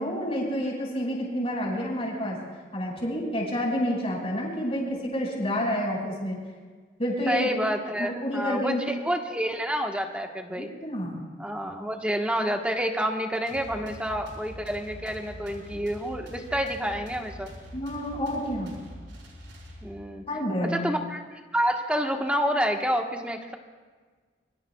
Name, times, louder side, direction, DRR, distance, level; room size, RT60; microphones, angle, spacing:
voice 1, 0.0-2.4 2.7-6.4 7.0-7.6 8.0-8.8 10.6-11.2 17.7-18.8 20.3-21.0, equal, 35° left, -2 dB, 5.3 m, -29 dB
voice 2, 7.3-10.7 11.4-17.5 19.8-20.2 20.6-23.6, equal, 5° right, 2 dB, 1.2 m, -28 dB
sound 1, 13.5-20.2, equal, 90° right, 4.6 m, -44 dB
25.5 x 23.5 x 2.3 m, 1.5 s
head